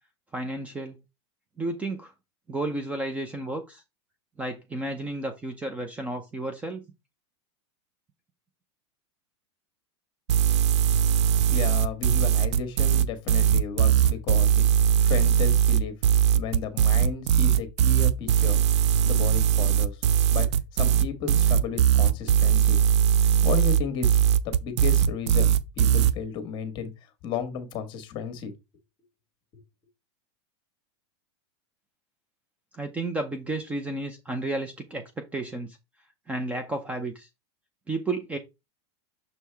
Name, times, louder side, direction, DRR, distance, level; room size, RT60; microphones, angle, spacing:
voice 1, 0.3-1.0 1.6-2.1 2.5-3.8 4.4-6.8 32.8-35.8 36.3-37.3 37.9-38.4, right 2 dB, 10° right, 0.6 m, -32 dB
sound 1, 10.3-26.1, right 9 dB, 75° right, 0.6 m, -20 dB
voice 2, 11.5-14.7 15.0-15.9 16.3-18.6 19.0-20.0 20.3-20.5 20.7-22.8 23.4-26.9 27.2-28.5, left 7 dB, 30° left, 1.4 m, -33 dB
6.7 x 4.6 x 3.4 m
supercardioid pair, 160°, 15 cm